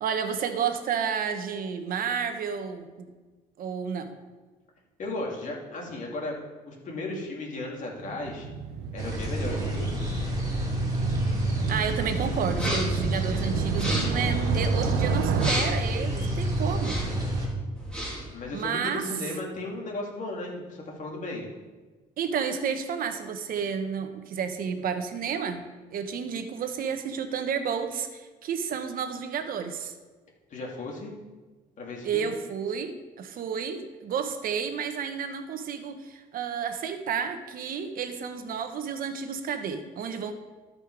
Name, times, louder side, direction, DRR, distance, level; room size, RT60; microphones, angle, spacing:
voice 1, 0.0-3.1 3.6-4.2 11.7-17.0 18.5-19.0 22.2-25.6 25.9-29.9 32.0-40.3, right 7 dB, 60° right, 7 dB, 1.0 m, -31 dB
voice 2, 5.0-6.4 6.7-8.5 8.9-10.3 18.3-21.5 30.5-31.1 31.8-32.3, left 2 dB, 45° left, -1 dB, 2.6 m, -35 dB
Motorcycle, 8.0-15.5, right 6 dB, 80° right, 0.7 m, -31 dB
sound 1, 9.0-17.5, right 1 dB, 20° right, 2.8 m, -29 dB
sound 2, 12.5-13.0 13.7-14.3 15.3-15.9 16.7-17.2 17.7-18.3, equal, 5° left, 2.9 m, -32 dB
13.5 x 5.4 x 4.7 m, 1.3 s
cardioid pair, 110°, 17 cm